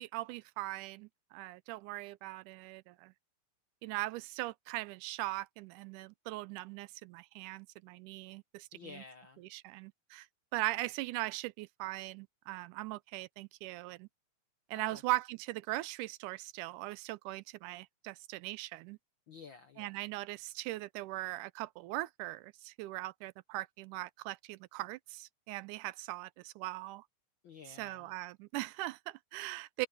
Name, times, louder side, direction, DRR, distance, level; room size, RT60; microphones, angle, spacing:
voice 1, 0.0-3.1 3.8-9.0 9.5-10.3 10.5-14.1 14.7-19.0 19.8-27.0 27.8-29.9, right 19 dB, 85° right, 2.1 m, -40 dB
voice 2, 8.7-9.4 14.7-15.0 19.3-20.0 27.4-28.1, left 5 dB, 60° left, 1.3 m, -52 dB
omnidirectional pair, 3.6 m